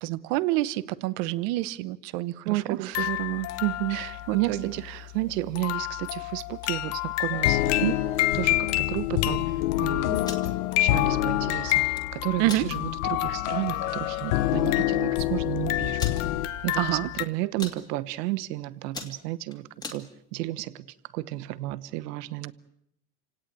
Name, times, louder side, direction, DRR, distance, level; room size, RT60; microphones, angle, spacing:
voice 1, 0.0-3.1 3.9-5.0 12.4-12.7 16.8-17.1, right 17 dB, 40° right, 17 dB, 0.9 m, -28 dB
voice 2, 2.4-4.8 5.1-8.0 8.3-16.0 16.6-20.9 21.1-22.5, right 17 dB, 70° right, 17 dB, 1.3 m, -32 dB
sound 1, 2.9-17.2, left 17 dB, 30° left, 0.9 m, -31 dB
sound 2, 7.3-16.5, left 14 dB, 55° left, 1.1 m, -27 dB
sound 3, 10.1-10.5 11.7-12.0 12.4-12.7 13.2-13.3 13.6-13.9 14.7-14.8 14.9-15.0 16.0-16.2 16.8-17.2 17.4-17.8 18.3-18.5 18.8-20.0, left 3 dB, 10° left, 2.2 m, -38 dB
28.0 x 18.0 x 9.0 m, 0.81 s
supercardioid pair, 175°, 49 cm